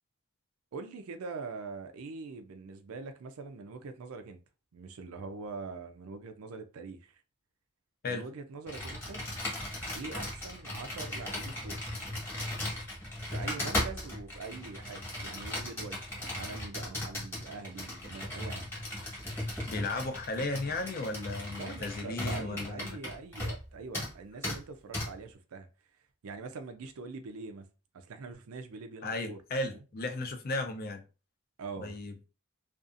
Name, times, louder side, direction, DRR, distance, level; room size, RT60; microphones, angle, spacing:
voice 1, 0.7-4.4 4.7-7.2 8.1-9.3 9.9-11.8 13.3-18.7 21.5-25.7 26.2-27.7 27.9-29.4 29.7-29.8 31.6-32.0, right 4 dB, 75° right, 0.4 m, -43 dB
Computer keyboard, 8.7-23.7 23.9-24.1 24.4-24.6 24.9-25.1, left 1 dB, 10° left, 1.0 m, -37 dB
voice 2, 19.7-23.0 29.0-31.0 31.8-32.1, left 2 dB, 45° left, 0.5 m, -35 dB
2.6 x 2.4 x 2.5 m
head